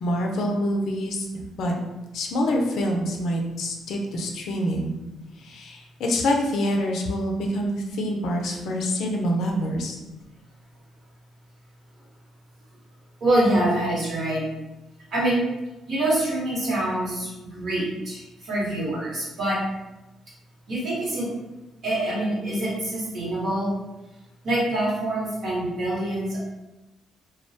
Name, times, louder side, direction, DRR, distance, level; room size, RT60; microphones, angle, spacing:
voice 1, 0.0-1.3 1.6-1.7 2.1-4.9 5.4-10.0, equal, 75° left, 1 dB, 0.4 m, -26 dB
voice 2, 13.2-14.5 15.1-15.4 15.9-19.6 20.7-21.3 21.8-23.7 24.4-26.4, right 1 dB, 60° right, -6 dB, 1.1 m, -25 dB
2.2 x 2.1 x 2.6 m, 1.0 s
cardioid pair, 90°, 0 cm